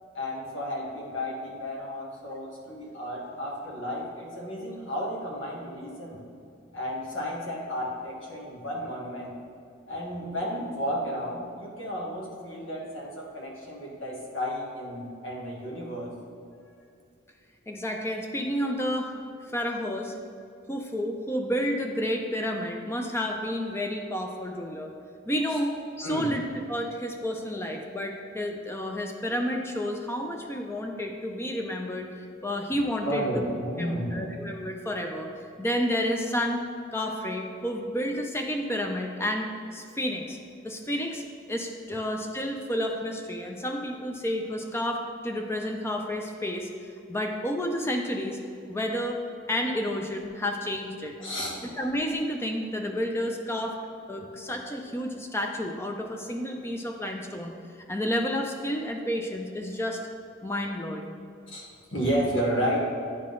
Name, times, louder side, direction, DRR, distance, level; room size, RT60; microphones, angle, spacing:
voice 1, 0.1-6.2 6.7-9.3 9.9-16.1 25.5-25.6 26.0-26.3 33.0-34.3 51.2-51.6 61.5-62.8, equal, 85° left, -3 dB, 1.5 m, -32 dB
voice 2, 17.7-19.2 19.5-20.1 20.7-24.9 25.3-32.1 32.4-33.4 33.8-35.3 35.6-36.6 36.9-40.4 40.6-46.7 47.1-48.4 48.7-51.2 51.7-53.8 54.1-57.5 57.9-60.0 60.4-61.1, equal, 15° left, 3 dB, 0.4 m, -30 dB
9.7 x 3.8 x 3.8 m, 2.5 s
head